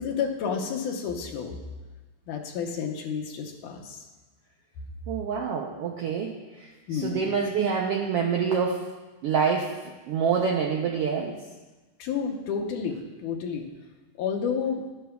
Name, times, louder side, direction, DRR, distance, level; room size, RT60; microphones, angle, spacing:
voice 1, 0.0-1.6 2.3-4.1 6.9-7.3 12.0-13.7 14.2-14.8, left 6 dB, 90° left, 1 dB, 2.4 m, -30 dB
voice 2, 5.1-8.9 9.2-9.7 10.1-11.4, right 6 dB, 90° right, 0 dB, 1.3 m, -26 dB
11.5 x 10.5 x 2.3 m, 1.2 s
omnidirectional pair, 3.5 m